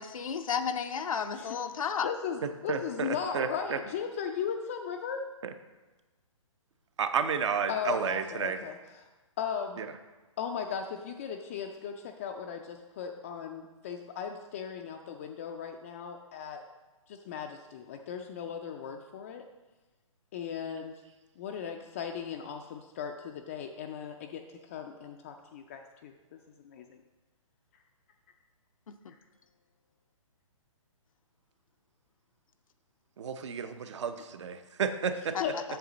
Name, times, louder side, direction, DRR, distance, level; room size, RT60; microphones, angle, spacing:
voice 1, 0.0-2.1 28.9-29.0 35.3-35.6, left 6 dB, 75° left, 7 dB, 0.6 m, -32 dB
voice 2, 2.0-5.3 7.7-9.1 9.4-9.8 10.4-16.6 17.1-19.5 20.3-21.0 21.4-26.1 26.6-27.0 35.4-35.6, left 7 dB, 25° left, 3 dB, 0.3 m, -37 dB
voice 3, 2.7-3.8 5.4-5.5 7.0-8.6 9.8-9.9 33.2-35.3, right 6 dB, 55° right, 9 dB, 0.7 m, -31 dB
8.0 x 6.3 x 3.9 m, 1.2 s
hypercardioid pair, 150°, 17 cm